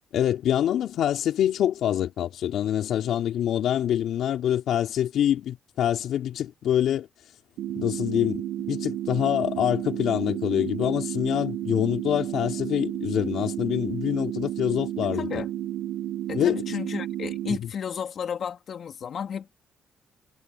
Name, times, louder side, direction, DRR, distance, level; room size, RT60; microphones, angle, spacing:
voice 1, 0.1-7.1 7.7-15.4 16.3-16.6, left 10 dB, 75° left, 4.3 m, -25 dB
sound 1, 7.6-17.6, right 12 dB, 85° right, 1.8 m, -32 dB
voice 2, 15.1-15.5 16.3-19.6, left 7 dB, 55° left, 3.0 m, -33 dB
cardioid pair, 90°, 0 cm